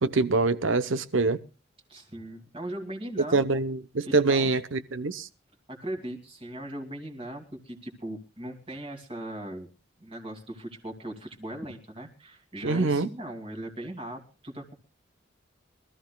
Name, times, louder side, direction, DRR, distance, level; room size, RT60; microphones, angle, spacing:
voice 1, 0.0-1.4 3.3-5.3 12.6-13.1, right 3 dB, 70° right, 0.9 m, -25 dB
voice 2, 1.9-3.6 4.0-4.6 5.7-9.7 10.0-14.7, right 1 dB, 25° right, 2.6 m, -39 dB
24.0 x 14.0 x 2.3 m
head